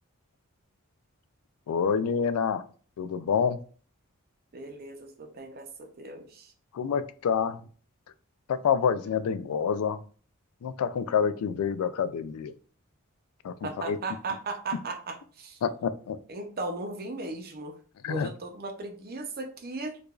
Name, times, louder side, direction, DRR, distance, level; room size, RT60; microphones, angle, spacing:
voice 1, 1.7-2.6 3.0-3.6 6.7-7.6 8.5-10.0 10.6-12.5 13.4-14.0 15.6-16.2 18.0-18.3, left 6 dB, 85° left, 13 dB, 0.3 m, -27 dB
voice 2, 4.5-6.5 13.6-15.6 16.3-17.7 18.1-20.0, right 3 dB, 45° right, 5 dB, 0.7 m, -37 dB
4.7 x 2.5 x 2.4 m, 0.41 s
head